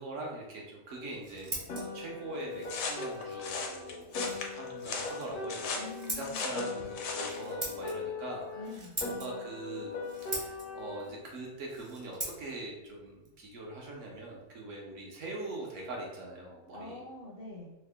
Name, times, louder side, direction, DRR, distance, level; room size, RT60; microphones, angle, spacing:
voice 1, 0.0-4.1 4.5-5.8 6.1-9.9 10.3-17.0, right 2 dB, 60° right, -2 dB, 1.0 m, -42 dB
Scissors, 0.9-14.5, right 1 dB, 40° right, 0.4 m, -45 dB
Piano, 1.7-6.2 6.5-11.2, left 3 dB, 90° left, 1.3 m, -40 dB
sound 1, 2.7-7.4, left 4 dB, 75° left, 1.0 m, -37 dB
voice 2, 5.7-6.5 8.6-8.9 16.7-17.7, left 3 dB, 60° left, -5 dB, 0.6 m, -45 dB
3.5 x 2.1 x 3.4 m, 1.0 s
omnidirectional pair, 1.6 m